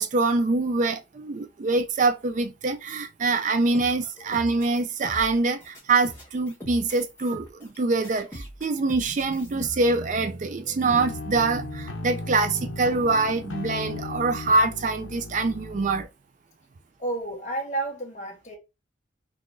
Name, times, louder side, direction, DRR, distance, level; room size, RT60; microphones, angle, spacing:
voice 1, 0.0-16.1, right 3 dB, 40° right, 0.4 m, -24 dB
sound 1, 3.6-7.8 8.0-9.7, equal, 15° left, 1.4 m, -42 dB
sound 2, 10.9-16.0, left 3 dB, 85° left, 0.8 m, -36 dB
voice 2, 17.0-18.6, right 2 dB, 40° left, 1.2 m, -31 dB
3.8 x 2.9 x 2.6 m
head